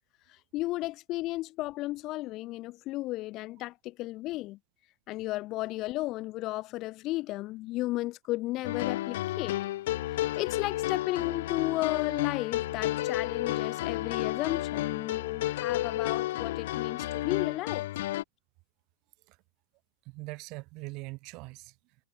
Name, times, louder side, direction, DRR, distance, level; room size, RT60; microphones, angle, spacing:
voice 1, 0.5-4.6 5.1-9.6 10.4-17.8, left 18 dB, 30° left, 1.5 m, -34 dB
sound 1, 8.6-18.2, left 15 dB, 55° left, 0.8 m, -31 dB
voice 2, 20.0-22.0, right 25 dB, 35° right, 1.9 m, -42 dB
supercardioid pair, 165°, 0 cm